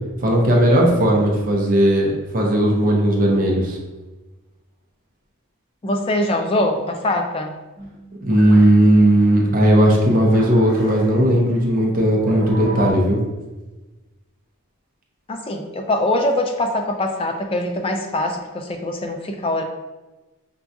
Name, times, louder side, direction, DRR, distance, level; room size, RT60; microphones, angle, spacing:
voice 1, 0.2-3.8 8.2-13.2, right 1 dB, 40° right, -2 dB, 0.6 m, -16 dB
voice 2, 5.8-7.5 15.3-19.6, left 1 dB, 25° left, 4 dB, 0.3 m, -23 dB
sound 1, 7.8-12.9, right 2 dB, ahead, 1.4 m, -35 dB
5.7 x 2.2 x 2.6 m, 1.2 s
head